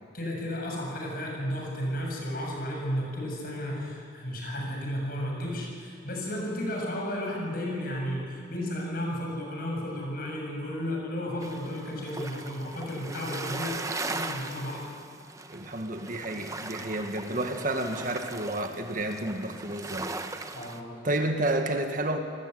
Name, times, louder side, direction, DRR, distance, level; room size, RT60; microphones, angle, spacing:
voice 1, 0.1-13.8 14.1-14.9 17.3-17.4 20.5-21.0, equal, 50° left, -1 dB, 7.5 m, -33 dB
sound 1, 11.4-20.8, right 3 dB, 15° right, 1.1 m, -39 dB
voice 2, 15.5-20.1 21.0-22.2, right 1 dB, 45° right, 5 dB, 1.9 m, -30 dB
29.0 x 19.5 x 9.4 m, 2.3 s
head